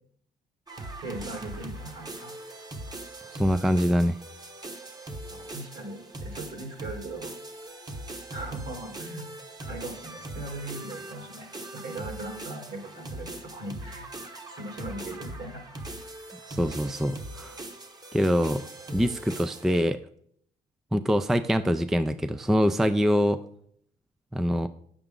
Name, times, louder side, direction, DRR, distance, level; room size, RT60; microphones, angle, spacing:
sound 1, 0.7-19.8, right 1 dB, 25° right, 1.0 m, -41 dB
voice 1, 1.0-2.3 5.3-7.3 8.3-9.3 9.7-14.1 14.5-16.0, right 2 dB, 65° right, 1 dB, 2.8 m, -39 dB
voice 2, 3.3-4.2 16.5-17.6 18.1-20.0 20.9-23.4 24.3-24.7, equal, ahead, 11 dB, 0.3 m, -24 dB
9.0 x 7.0 x 3.7 m, 0.66 s
cardioid pair, 110°, 17 cm